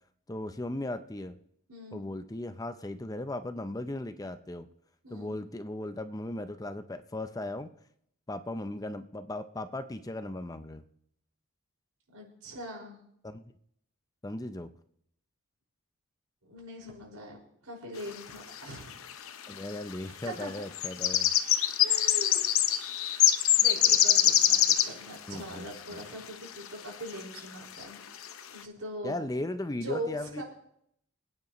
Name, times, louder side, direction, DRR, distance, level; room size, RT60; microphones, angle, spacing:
voice 1, 0.3-1.4 1.9-4.7 5.1-7.7 8.3-10.8 13.2-13.4 14.2-14.7 19.5-21.3 25.3-26.0 29.0-30.4, left 1 dB, 15° left, 10 dB, 0.5 m, -37 dB
voice 2, 1.7-2.0 5.0-5.3 12.1-13.0 16.4-17.4 17.6-19.0 20.2-20.5 21.8-22.6 23.6-28.2 28.5-29.2 29.8-30.4, equal, 85° right, -1 dB, 5.1 m, -41 dB
sound 1, 18.6-18.7 18.9-19.5 20.4-25.0 25.9-26.0 26.6-26.7 27.1-27.4 27.8-27.9 28.1-28.4, left 11 dB, 75° left, 0.7 m, -24 dB
26.0 x 9.6 x 3.1 m, 0.70 s
head